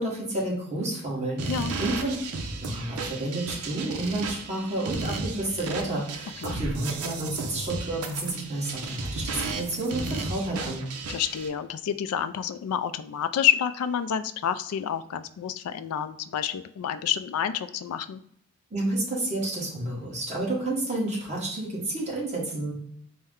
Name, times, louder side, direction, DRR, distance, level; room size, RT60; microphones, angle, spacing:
voice 1, 0.0-2.1 2.6-10.8 18.7-22.7, right 2 dB, 30° right, -4 dB, 1.2 m, -30 dB
sound 1, 1.4-11.5, right 3 dB, 85° right, 0.6 m, -34 dB
voice 2, 11.1-18.2, left 9 dB, 85° left, 12 dB, 0.3 m, -28 dB
4.4 x 2.1 x 3.6 m, 0.68 s
head